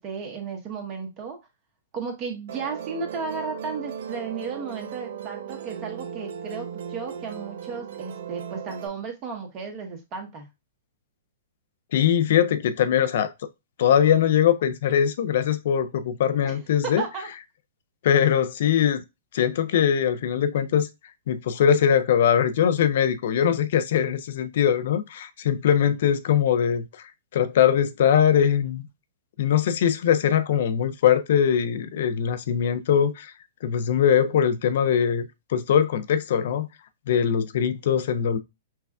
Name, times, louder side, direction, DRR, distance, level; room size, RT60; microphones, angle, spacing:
voice 1, 0.0-1.4 1.9-10.5 16.4-17.3, right 5 dB, 35° right, 1.2 m, -34 dB
Musical instrument, 2.5-8.9, right 8 dB, 65° right, 0.5 m, -37 dB
voice 2, 11.9-13.3 13.8-17.0 18.0-19.0 19.3-20.9 21.3-28.8 29.4-33.3 33.6-36.7 37.1-38.4, left 8 dB, 60° left, 0.5 m, -21 dB
5.8 x 2.3 x 2.3 m
hypercardioid pair, 115°, 0 cm